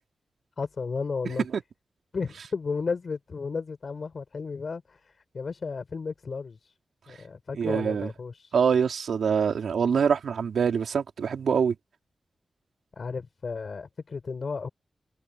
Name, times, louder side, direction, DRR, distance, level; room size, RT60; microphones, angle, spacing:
voice 1, 0.6-1.5 2.1-6.7 7.1-8.6 13.0-14.7, left 4 dB, 60° left, 7.3 m, -33 dB
voice 2, 7.6-8.1 8.5-11.7, right 6 dB, 85° right, 4.1 m, -24 dB
cardioid pair, 45°, 0 cm